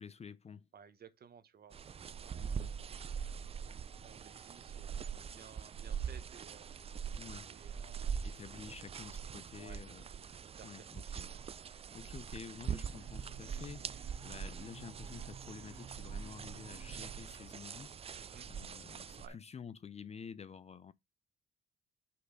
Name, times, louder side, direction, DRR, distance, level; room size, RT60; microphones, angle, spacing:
voice 1, 0.0-0.7 2.3-2.7 7.2-7.5 8.2-10.0 10.6-11.3 11.7-18.0 18.5-20.9, left 6 dB, 35° left, 0.5 m, -50 dB
voice 2, 0.7-1.7 2.2-3.1 4.0-6.7 7.5-8.1 9.5-9.8 10.5-11.0 18.1-18.5 19.2-19.4, right 7 dB, 50° right, 1.1 m, -57 dB
sound 1, 1.7-19.3, right 7 dB, 30° right, 0.4 m, -43 dB
sound 2, 12.8-17.2, right 6 dB, 75° right, 2.3 m, -53 dB
5.5 x 4.3 x 4.8 m
cardioid pair, 90°, 20 cm